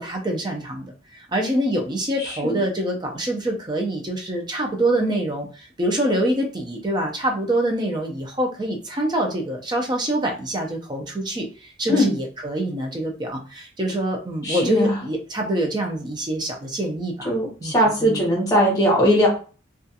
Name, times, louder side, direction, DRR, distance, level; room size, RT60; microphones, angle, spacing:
voice 1, 0.0-17.3 17.6-17.7 18.0-18.3, right 1 dB, 20° right, 2 dB, 0.4 m, -25 dB
voice 2, 2.2-2.6 11.9-12.1 14.4-15.0 17.2-19.3, equal, 20° left, -1 dB, 0.8 m, -20 dB
2.4 x 2.3 x 2.7 m, 0.37 s
head